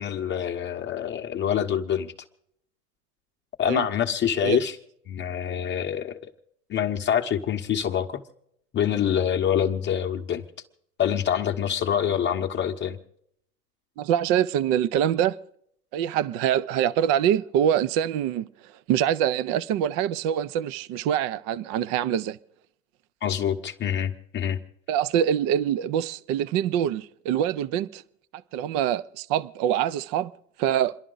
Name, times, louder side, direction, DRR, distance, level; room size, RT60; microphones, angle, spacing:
voice 1, 0.0-2.1 3.6-4.7 5.1-6.2 6.7-8.2 8.7-10.4 11.0-13.0 23.2-24.6, left 9 dB, 25° left, 0.9 m, -26 dB
voice 2, 14.0-15.4 15.9-22.4 24.9-28.0 28.5-30.3 30.6-31.0, right 10 dB, 35° right, 0.5 m, -25 dB
28.0 x 11.0 x 3.9 m
hypercardioid pair, 105°, 47 cm